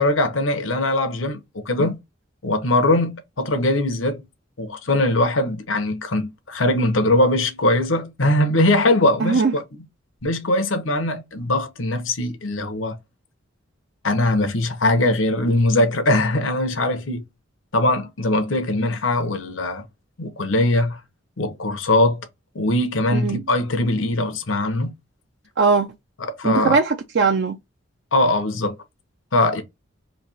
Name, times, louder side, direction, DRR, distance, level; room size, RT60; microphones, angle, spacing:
voice 1, 0.0-2.0 2.4-4.2 4.6-9.6 10.2-13.0 14.0-17.2 17.7-19.8 20.2-21.0 21.4-22.3 22.5-24.9 26.2-26.8 28.1-28.8 29.3-29.6, left 2 dB, 90° left, 0.9 m, -21 dB
voice 2, 9.2-9.5 23.1-23.4 25.6-25.9 26.4-27.6, right 4 dB, 60° right, 0.5 m, -19 dB
3.3 x 2.7 x 4.1 m
head